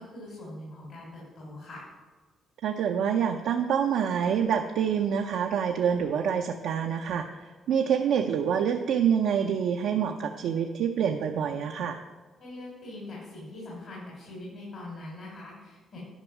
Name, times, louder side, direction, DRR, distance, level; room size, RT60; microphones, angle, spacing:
voice 1, 0.0-1.8 12.4-16.0, left 1 dB, 65° left, -5 dB, 3.6 m, -42 dB
voice 2, 2.6-12.0, right 8 dB, 80° right, 3 dB, 0.6 m, -26 dB
11.0 x 5.3 x 5.9 m, 1.3 s
cardioid pair, 75°, 0 cm